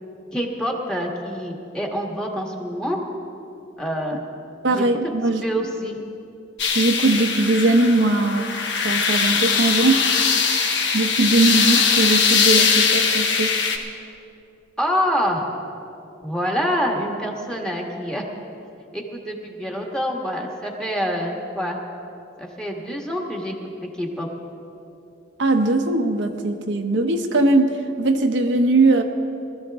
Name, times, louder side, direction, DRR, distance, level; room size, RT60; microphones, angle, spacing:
voice 1, 0.3-3.0 3.8-4.2 4.7-5.1 5.4-6.0 14.8-15.4 16.2-18.2 18.9-21.8 22.4-24.3, equal, 5° left, 0 dB, 1.4 m, -26 dB
voice 2, 4.6-5.4 6.7-8.5 8.8-10.1 10.5-13.6 25.4-29.0, right 2 dB, 70° right, 4 dB, 0.9 m, -20 dB
sound 1, 6.6-13.8, left 5 dB, 65° left, 1.2 m, -20 dB
20.0 x 14.0 x 3.5 m, 2.7 s
head